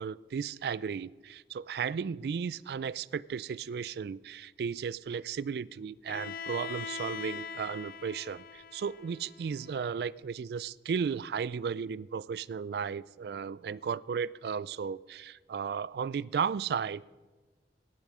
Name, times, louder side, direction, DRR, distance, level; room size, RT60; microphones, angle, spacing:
voice 1, 0.0-17.0, right 6 dB, 65° right, 21 dB, 0.3 m, -35 dB
Bowed string instrument, 6.1-10.0, left 5 dB, 50° left, 0.5 m, -42 dB
16.5 x 11.0 x 4.8 m, 1.3 s
head